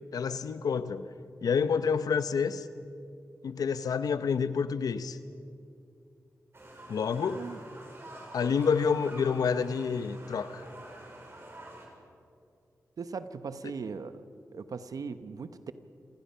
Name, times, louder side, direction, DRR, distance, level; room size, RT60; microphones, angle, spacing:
voice 1, 0.1-1.1 1.4-2.7 3.4-5.2 6.9-7.4 8.3-10.6, left 6 dB, 80° left, 13 dB, 0.8 m, -28 dB
sound 1, 6.5-11.9, right 1 dB, 40° right, 5.3 m, -47 dB
voice 2, 13.0-14.2 14.5-15.7, right 5 dB, 70° right, 11 dB, 1.0 m, -39 dB
28.0 x 16.5 x 5.7 m, 2.4 s
cardioid pair, 50°, 6 cm